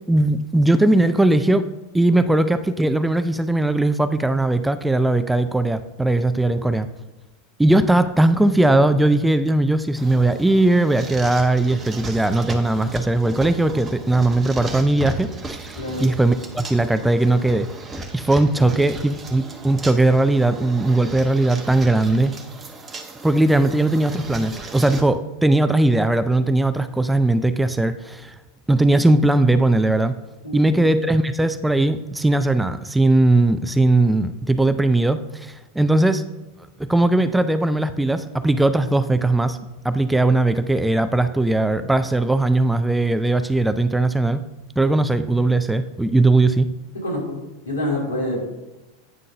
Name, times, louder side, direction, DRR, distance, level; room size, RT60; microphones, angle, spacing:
voice 1, 0.1-1.6 1.9-6.9 7.6-17.7 18.1-22.4 23.2-28.4 28.7-30.2 30.5-36.2 36.8-39.6 39.8-44.4 44.8-46.7, right 2 dB, 5° right, 11 dB, 0.4 m, -19 dB
sound 1, 9.9-25.0, right 2 dB, 20° right, 1.0 m, -36 dB
voice 2, 15.8-16.1 18.6-18.7 30.4-30.8 46.9-47.3 47.6-48.4, left 1 dB, 85° left, -3 dB, 2.8 m, -27 dB
9.0 x 3.8 x 5.4 m, 1.0 s
hypercardioid pair, 90°, 0 cm